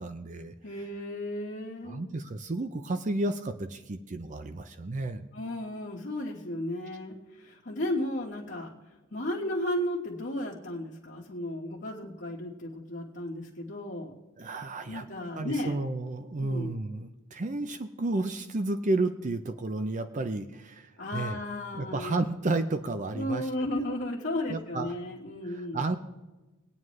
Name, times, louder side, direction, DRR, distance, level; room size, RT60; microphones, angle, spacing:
voice 1, 0.0-0.5 1.8-5.3 14.4-15.1 15.4-21.4 21.8-23.7 24.5-24.9 25.4-26.0, right 2 dB, 35° right, 8 dB, 0.5 m, -32 dB
voice 2, 0.6-2.0 5.3-8.7 9.1-14.1 14.9-15.8 16.4-16.7 21.0-22.1 23.1-25.8, left 1 dB, 55° left, -5 dB, 1.4 m, -34 dB
21.0 x 9.1 x 3.2 m, 1.1 s
head